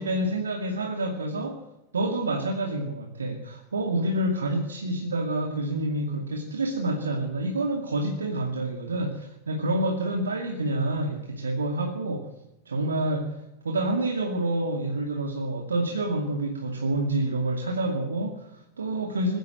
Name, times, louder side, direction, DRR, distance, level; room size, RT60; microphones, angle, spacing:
voice 1, 0.0-1.6 1.9-12.3 12.7-13.4 13.6-19.4, right 1 dB, 70° right, 3 dB, 2.4 m, -28 dB
21.5 x 16.0 x 7.8 m, 0.88 s
figure-of-eight pair, 90°, 0 cm